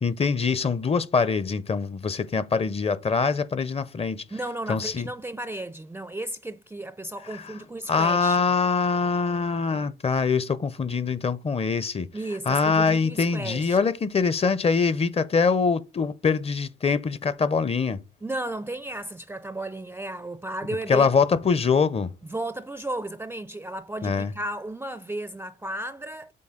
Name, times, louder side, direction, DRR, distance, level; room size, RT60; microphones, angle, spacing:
voice 1, 0.0-4.2 4.7-5.1 7.2-7.6 7.9-12.1 12.5-18.0 20.9-22.1 24.0-24.3, left 5 dB, 30° left, 0.6 m, -24 dB
voice 2, 4.3-8.4 12.1-13.8 18.2-21.1 22.3-26.3, right 1 dB, 10° right, 0.4 m, -34 dB
7.6 x 3.9 x 3.8 m
cardioid pair, 90°, 20 cm